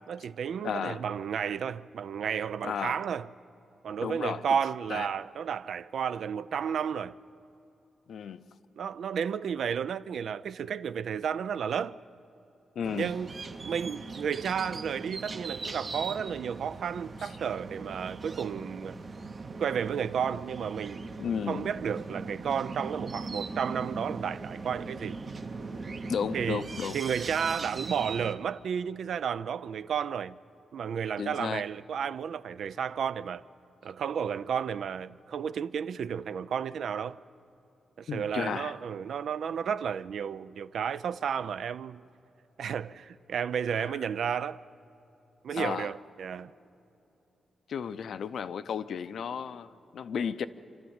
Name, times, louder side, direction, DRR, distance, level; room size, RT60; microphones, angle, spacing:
voice 1, 0.0-3.3 3.8-7.1 8.8-12.0 12.9-13.3 13.6-19.0 19.6-21.0 21.5-25.2 26.3-26.7 26.9-30.4 30.7-33.4 33.8-37.2 38.0-42.0 42.6-44.6 45.4-46.5, right 7 dB, 65° right, 0.4 m, -32 dB
voice 2, 0.6-1.0 2.6-3.0 4.0-4.5 4.9-5.1 8.1-8.5 12.8-13.1 17.2-17.3 21.2-21.7 26.1-27.0 31.2-31.6 38.1-38.8 45.5-45.9 47.7-50.5, left 7 dB, 65° left, 0.6 m, -33 dB
sound 1, 12.8-28.3, right 3 dB, 35° right, 0.8 m, -40 dB
27.5 x 12.5 x 8.8 m
wide cardioid pair, 175°, 0 cm